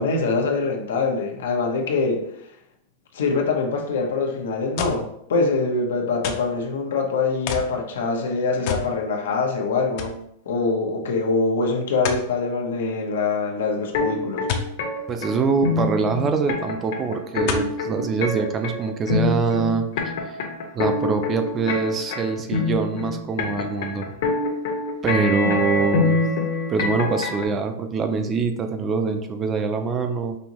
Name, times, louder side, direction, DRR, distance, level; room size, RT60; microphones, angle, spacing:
voice 1, 0.0-2.2 3.1-10.1 10.5-14.5 25.4-25.8, left 3 dB, 90° left, 1 dB, 0.9 m, -24 dB
sound 1, 4.8-5.1 6.2-6.6 7.5-7.8 8.7-8.9 9.3-9.4 10.0-10.2 12.0-12.3 14.5-14.7 16.2-16.3 17.5-17.8 18.5-18.6, left 6 dB, 50° left, 0.6 m, -28 dB
sound 2, 13.9-27.4, left 3 dB, 65° left, 1.0 m, -25 dB
voice 2, 15.1-20.1 20.7-24.1 25.0-26.3 26.7-30.4, right 4 dB, 20° right, 7 dB, 0.4 m, -24 dB
5.3 x 2.7 x 3.0 m, 0.73 s
supercardioid pair, 150°, 0 cm